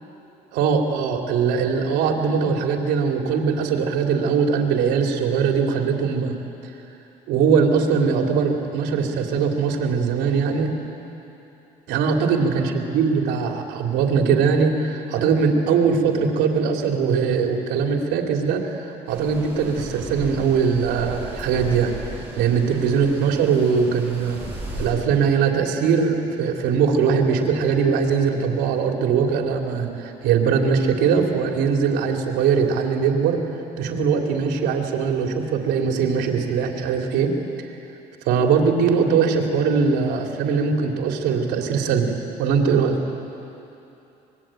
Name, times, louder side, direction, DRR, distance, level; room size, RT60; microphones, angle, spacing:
voice 1, 0.5-6.4 7.3-10.7 11.9-24.4 24.8-33.4 33.8-37.3 38.2-43.0, right 6 dB, 90° right, 2 dB, 3.2 m, -21 dB
sound 1, 19.1-24.9, right 1 dB, 10° right, 7.8 m, -36 dB
25.0 x 21.5 x 9.1 m, 2.9 s
cardioid pair, 110°, 17 cm